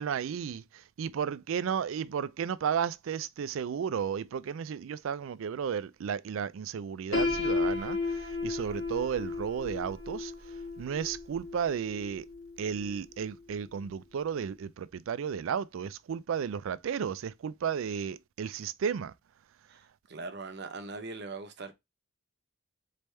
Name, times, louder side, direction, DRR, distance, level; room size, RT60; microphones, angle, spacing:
voice 1, 0.0-12.3 12.6-19.1, right 7 dB, 70° right, 0.3 m, -33 dB
Piano, 7.1-13.0, left 3 dB, 60° left, 1.4 m, -34 dB
voice 2, 19.7-21.7, right 3 dB, 50° right, 0.8 m, -41 dB
4.2 x 3.4 x 3.2 m
head